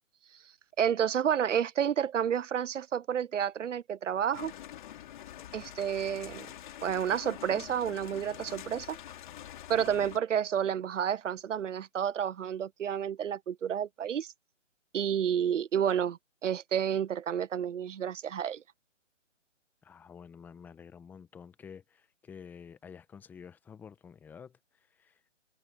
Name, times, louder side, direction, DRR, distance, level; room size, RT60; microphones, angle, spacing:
voice 1, 0.8-4.5 5.5-6.5 6.8-9.0 9.7-14.3 14.9-18.6, right 9 dB, 75° right, 0.6 m, -30 dB
Rain in a window, 4.3-10.2, left 11 dB, 40° left, 3.4 m, -45 dB
voice 2, 19.8-25.2, left 6 dB, 5° left, 0.9 m, -50 dB
hypercardioid pair, 150°, 37 cm